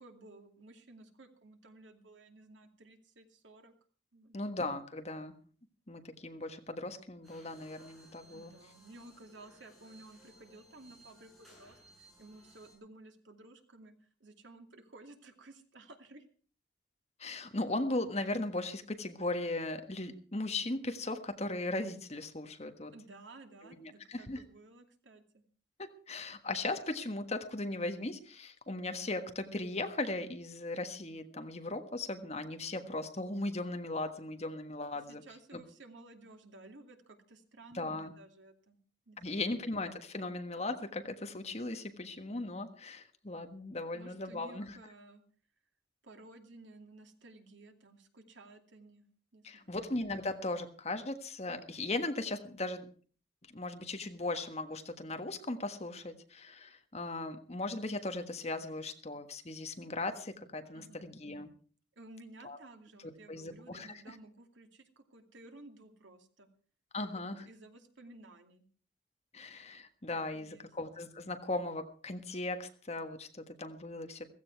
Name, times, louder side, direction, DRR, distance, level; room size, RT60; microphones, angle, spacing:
voice 1, 0.0-3.7 4.1-4.4 8.3-16.2 22.9-25.4 35.1-38.8 39.1-39.6 43.9-45.2 46.0-49.1 49.3-49.9 60.7-61.1 62.0-66.5 66.9-68.6 70.1-70.7, right 2 dB, 90° right, 5 dB, 2.5 m, -55 dB
voice 2, 4.3-5.3 5.9-8.5 17.2-22.9 23.6-24.4 25.8-35.2 35.5-35.6 37.7-38.1 39.2-44.8 49.4-52.9 53.5-61.5 62.4-62.6 63.3-63.9 66.9-67.4 69.3-74.2, left 2 dB, 35° left, 7 dB, 1.5 m, -38 dB
sound 1, 7.2-12.7, equal, ahead, 7.9 m, -60 dB
16.0 x 15.5 x 4.6 m, 0.41 s
head